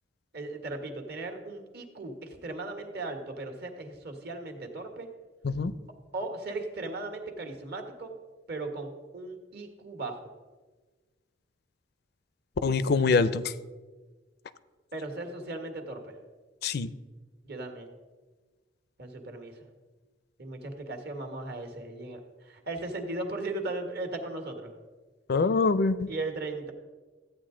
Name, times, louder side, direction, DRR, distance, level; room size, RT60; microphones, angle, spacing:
voice 1, 0.3-5.1 6.1-8.1 8.5-10.2 14.9-16.2 17.4-17.9 19.0-19.7 20.4-24.7 26.1-26.7, right 2 dB, 60° right, 4 dB, 1.5 m, -37 dB
voice 2, 12.6-13.5 16.6-16.9 25.3-26.1, left 4 dB, 60° left, 15 dB, 0.4 m, -24 dB
13.5 x 8.9 x 3.8 m, 1.3 s
head